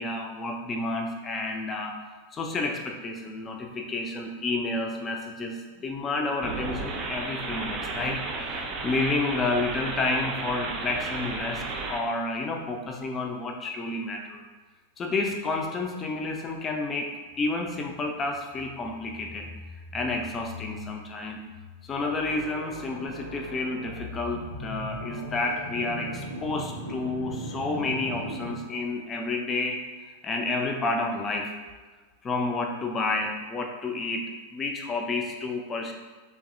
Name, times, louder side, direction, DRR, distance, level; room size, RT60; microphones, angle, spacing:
voice 1, 0.0-1.9 2.3-14.4 15.0-19.5 19.9-21.4 21.8-29.8 30.2-31.5 32.2-35.9, left 3 dB, 25° left, 2 dB, 0.4 m, -30 dB
sound 1, 6.4-12.0, right 3 dB, 35° right, 0.4 m, -33 dB
sound 2, 22.1-29.0, equal, 80° left, 0.6 m, -38 dB
3.3 x 2.6 x 2.5 m, 1.4 s
figure-of-eight pair, 90°, 0 cm